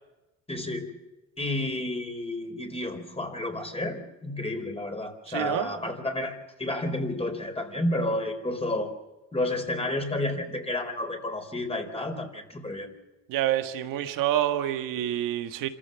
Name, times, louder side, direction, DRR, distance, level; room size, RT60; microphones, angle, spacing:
voice 1, 0.5-0.9 1.4-8.9 9.3-12.9, left 1 dB, 20° left, 4.4 m, -31 dB
voice 2, 5.3-5.7 13.3-15.7, right 12 dB, 90° right, 1.7 m, -27 dB
26.5 x 15.0 x 7.0 m
cardioid pair, 80°, 32 cm